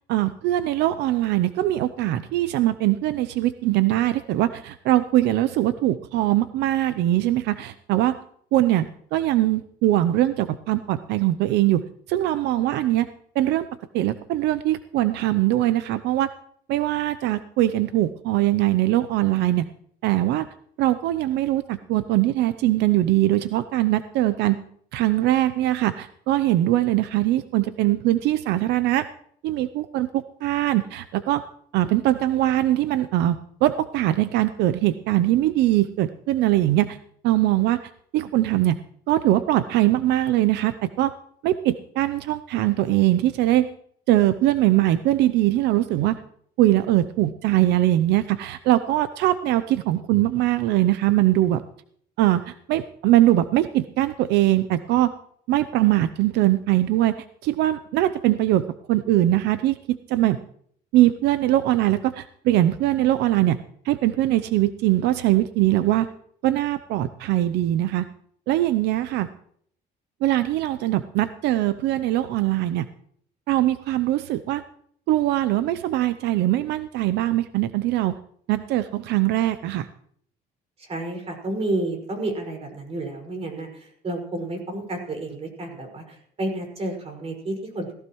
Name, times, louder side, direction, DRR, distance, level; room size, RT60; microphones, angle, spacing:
voice 1, 0.1-8.2 8.5-11.8 12.1-13.1 13.4-13.7 13.9-16.3 16.7-19.7 20.0-20.5 20.8-24.6 24.9-29.1 29.4-31.4 31.7-37.0 37.2-37.8 38.1-38.8 39.1-41.1 41.4-43.7 44.1-46.2 46.6-51.6 52.2-55.1 55.5-57.1 57.4-60.4 60.9-63.6 63.8-66.1 66.4-68.1 68.5-69.3 70.2-72.9 73.5-74.6 75.1-78.2 78.5-79.9, right 14 dB, 85° right, 13 dB, 0.6 m, -21 dB
voice 2, 80.8-87.9, right 2 dB, 35° right, 2 dB, 5.4 m, -30 dB
18.0 x 15.5 x 3.1 m, 0.63 s
cardioid pair, 110°, 17 cm